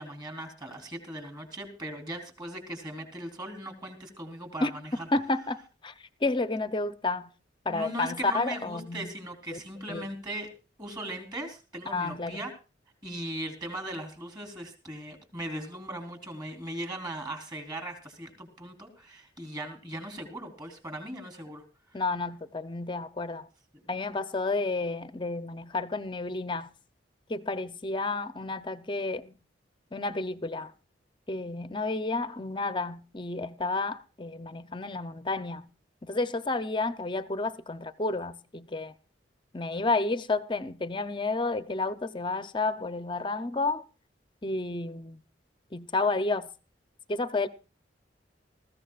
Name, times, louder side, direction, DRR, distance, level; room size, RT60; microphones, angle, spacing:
voice 1, 0.0-5.1 7.7-10.5 10.8-12.5 13.0-21.6 21.9-22.1, right 1 dB, 25° right, 3.6 m, -39 dB
voice 2, 5.1-5.9 6.2-7.3 7.7-9.1 9.5-9.6 9.9-10.0 11.9-12.4 21.9-23.5 23.9-26.7 27.3-29.4 29.9-30.7 31.3-35.6 36.0-38.9 39.5-43.8 44.4-45.2 45.7-46.5 47.1-47.5, left 3 dB, 25° left, 0.6 m, -31 dB
20.0 x 15.0 x 2.4 m
head